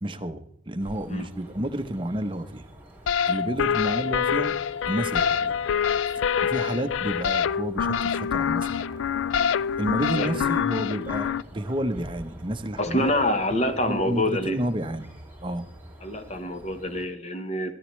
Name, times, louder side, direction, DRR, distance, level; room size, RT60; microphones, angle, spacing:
voice 1, 0.0-2.7 3.3-4.5 4.9-5.5 6.2-9.0 9.5-13.1 13.8-15.1 15.4-15.7, right 1 dB, 25° right, 7 dB, 0.7 m, -30 dB
sound 1, 0.8-17.1, right 1 dB, 10° right, 3.1 m, -47 dB
sound 2, 3.1-11.4, left 7 dB, 75° left, 0.3 m, -25 dB
voice 2, 10.2-10.5 12.8-14.6 16.0-17.7, left 1 dB, 35° left, 8 dB, 1.1 m, -26 dB
13.5 x 13.0 x 3.1 m, 0.72 s
head